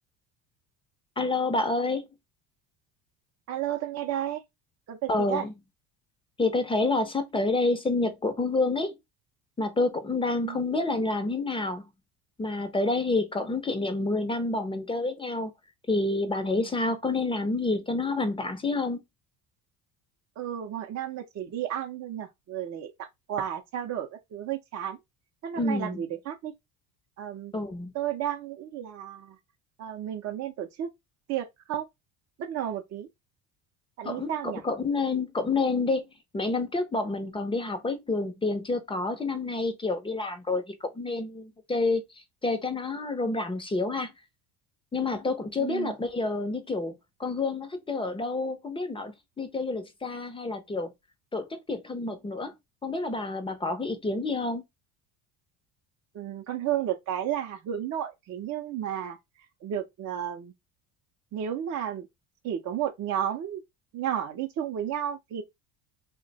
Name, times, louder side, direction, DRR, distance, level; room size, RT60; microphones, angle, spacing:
voice 1, 1.2-2.0 5.1-5.5 6.4-8.9 9.6-11.8 12.4-15.5 15.9-19.0 25.6-26.0 27.5-27.9 34.0-42.0 42.4-44.1 44.9-50.9 51.3-52.5 52.8-54.6, left 3 dB, 15° left, 0.5 m, -28 dB
voice 2, 3.5-4.4 4.9-5.5 10.4-10.6 20.4-25.0 25.4-26.5 27.2-27.5 27.9-29.3 29.8-30.9 31.3-31.9 32.4-33.1 34.0-34.6 45.6-45.9 56.1-59.2 59.6-60.5 61.3-62.1 62.4-63.6 63.9-65.4, right 10 dB, 40° right, 0.5 m, -32 dB
2.7 x 2.2 x 3.9 m
cardioid pair, 125°, 40 cm